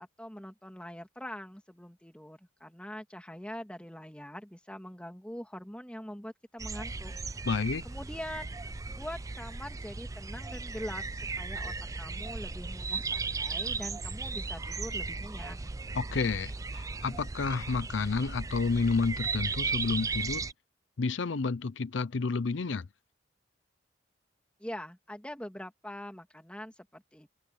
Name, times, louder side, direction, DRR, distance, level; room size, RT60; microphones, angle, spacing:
voice 1, 0.0-7.5 7.8-8.5 8.9-15.6 24.6-27.3, equal, 5° left, 2.5 m, -43 dB
sound 1, 6.6-20.5, right 4 dB, 15° right, 0.4 m, -36 dB
voice 2, 7.5-7.8 15.9-20.5 21.0-22.9, left 4 dB, 75° left, 0.6 m, -30 dB
open air
head